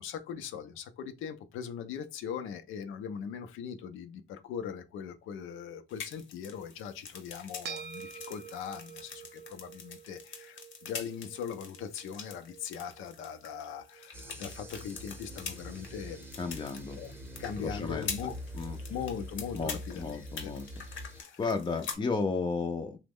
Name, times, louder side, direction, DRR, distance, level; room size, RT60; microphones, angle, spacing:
voice 1, 0.0-16.2 16.9-17.1 17.4-18.3 18.9-20.5 20.8-21.4, left 7 dB, 85° left, 0.5 m, -40 dB
sound 1, 5.9-22.0, left 6 dB, 70° left, 0.9 m, -45 dB
sound 2, 7.6-16.2, right 8 dB, 55° right, 0.5 m, -49 dB
sound 3, 14.1-21.2, equal, 10° right, 0.7 m, -44 dB
voice 2, 16.4-17.0 17.6-18.1 18.6-18.8 19.5-20.7 21.4-23.0, left 4 dB, 25° left, 0.4 m, -33 dB
3.0 x 2.1 x 3.5 m
cardioid pair, 90°, 20 cm